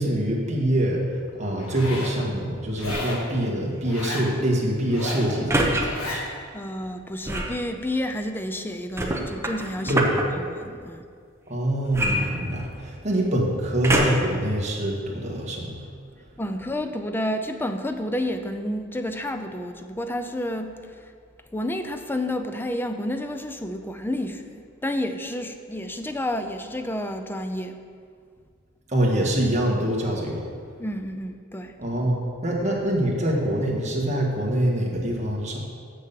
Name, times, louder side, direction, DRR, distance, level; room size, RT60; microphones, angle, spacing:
voice 1, 0.0-6.2 9.8-10.3 11.5-15.8 28.9-30.5 31.8-35.6, right 1 dB, 35° right, -3 dB, 1.6 m, -25 dB
Zipper (clothing), 1.6-2.2 2.8-3.3 3.8-4.3 4.8-5.3 5.8-6.2, left 2 dB, 85° left, 1.7 m, -33 dB
sound 1, 2.8-3.2 5.5-5.8 7.2-7.6 9.0-10.2 11.9-12.9 13.8-14.4 15.0-15.1, right 1 dB, 15° right, 0.9 m, -25 dB
voice 2, 6.5-10.0 10.4-11.1 16.4-21.1 21.5-27.8 30.8-31.8, left 1 dB, 10° left, 7 dB, 0.5 m, -30 dB
7.1 x 6.5 x 6.9 m, 2.1 s
head